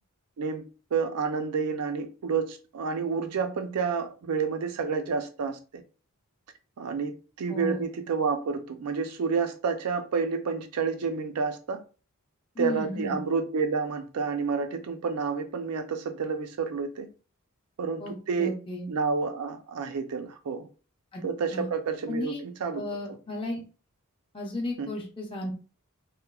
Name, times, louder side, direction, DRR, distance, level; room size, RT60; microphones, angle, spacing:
voice 1, 0.9-5.8 6.8-11.8 12.6-17.1 17.8-18.5 18.9-20.7 21.2-22.8 23.1-23.2 24.8-24.9, right 5 dB, 85° right, 0.4 m, -29 dB
voice 2, 7.5-7.8 12.6-13.2 18.0-18.9 21.1-21.2 21.5-21.7 22.1-22.4 22.7-23.6 24.3-25.5, left 1 dB, 25° left, 0.6 m, -34 dB
2.9 x 2.1 x 2.3 m
head